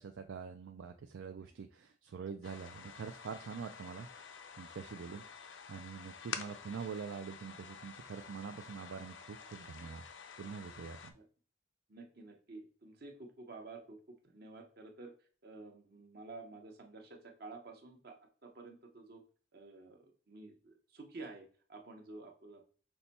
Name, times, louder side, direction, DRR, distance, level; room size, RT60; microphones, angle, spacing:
voice 1, 0.0-4.3 4.6-5.2 5.7-10.0 10.4-11.1, right 6 dB, 90° right, 6 dB, 0.4 m, -45 dB
sound 1, 2.4-11.1, left 7 dB, 85° left, 0.5 m, -49 dB
voice 2, 11.9-14.0 14.2-15.1 15.4-18.2 18.4-19.2 19.5-22.6, right 3 dB, 55° right, 3 dB, 0.9 m, -51 dB
5.6 x 2.2 x 4.1 m, 0.41 s
head